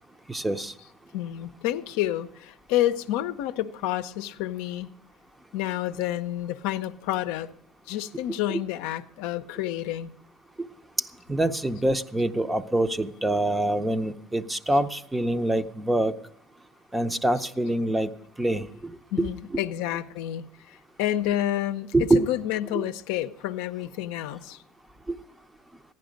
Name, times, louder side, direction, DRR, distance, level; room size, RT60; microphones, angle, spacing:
voice 1, 0.3-0.7 11.0-16.1 16.9-18.1 18.4-19.3 19.5-19.6 21.9-22.3 22.7-22.8 25.1-25.2, right 1 dB, 10° right, 0.6 m, -25 dB
voice 2, 1.1-4.9 5.5-7.5 7.9-10.2 19.1-24.6, left 13 dB, 75° left, 0.5 m, -29 dB
15.0 x 10.5 x 5.1 m
supercardioid pair, 100°, 0 cm